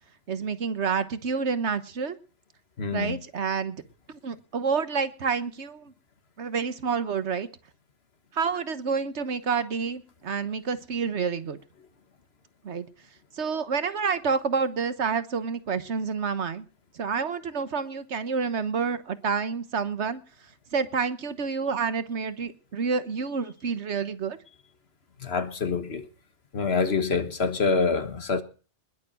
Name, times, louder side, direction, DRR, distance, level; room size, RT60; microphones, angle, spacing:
voice 1, 0.3-2.2 2.9-3.8 4.1-5.9 6.4-7.5 8.3-11.6 12.6-12.8 13.4-16.6 16.9-20.2 20.7-24.4, right 5 dB, 75° right, 1.5 m, -28 dB
voice 2, 2.8-3.2 25.2-26.0 26.5-28.4, left 4 dB, 65° left, 1.6 m, -26 dB
20.5 x 7.0 x 7.5 m
omnidirectional pair, 1.2 m